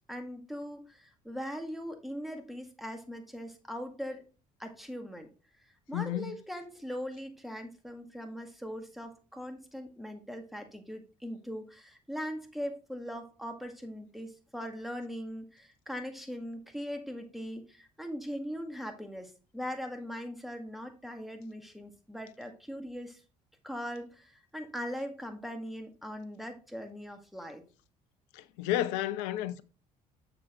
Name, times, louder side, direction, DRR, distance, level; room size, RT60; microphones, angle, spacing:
voice 1, 0.1-4.2 4.6-5.3 5.9-23.2 23.6-27.6, equal, ahead, 1.8 m, -40 dB
voice 2, 5.9-6.4 28.3-29.6, left 13 dB, 75° left, 0.5 m, -32 dB
7.0 x 6.7 x 3.0 m
hypercardioid pair, 50°, 19 cm